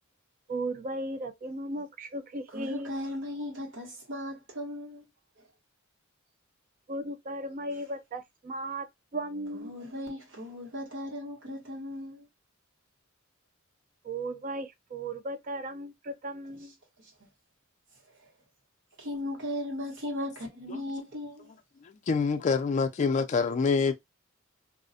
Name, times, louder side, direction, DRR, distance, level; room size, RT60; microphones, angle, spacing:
voice 1, 0.5-2.9 6.9-8.9 9.1-9.7 14.0-16.7, right 1 dB, 40° right, 0.4 m, -36 dB
voice 2, 2.5-5.0 9.6-12.3 19.0-21.5, left 1 dB, 65° right, 1.1 m, -37 dB
voice 3, 21.8-23.9, left 5 dB, 35° left, 0.3 m, -26 dB
2.4 x 2.1 x 2.6 m
head